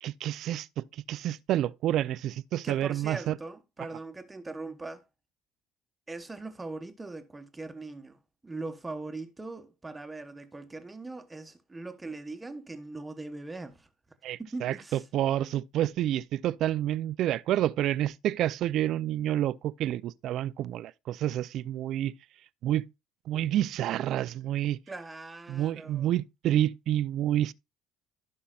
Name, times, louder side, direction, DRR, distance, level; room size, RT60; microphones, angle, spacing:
voice 1, 0.0-3.4 14.2-22.1 22.6-22.9 23.3-24.8 25.5-27.5, right 12 dB, 55° right, 0.4 m, -29 dB
voice 2, 2.6-5.0 6.1-8.2 8.4-13.9 14.4-15.1 24.9-26.1, right 3 dB, 10° right, 1.0 m, -40 dB
15.5 x 5.5 x 2.4 m
cardioid pair, 135°, 0 cm